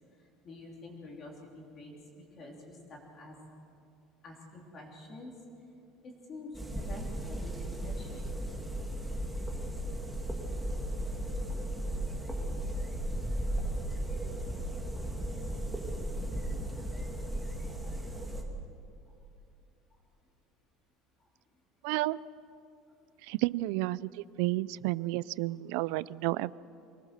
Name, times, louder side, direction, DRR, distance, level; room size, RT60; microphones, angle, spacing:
voice 1, 0.4-3.4 4.2-5.3 6.0-8.4 16.8-17.1 17.8-18.2 24.6-24.7, left 2 dB, 30° left, 0 dB, 3.1 m, -48 dB
sound 1, 6.5-18.4, right 1 dB, 5° right, 1.8 m, -35 dB
voice 2, 21.8-22.2 23.2-26.5, right 19 dB, 70° right, 20 dB, 0.4 m, -31 dB
24.5 x 18.5 x 6.7 m, 2.7 s
cardioid pair, 170°, 0 cm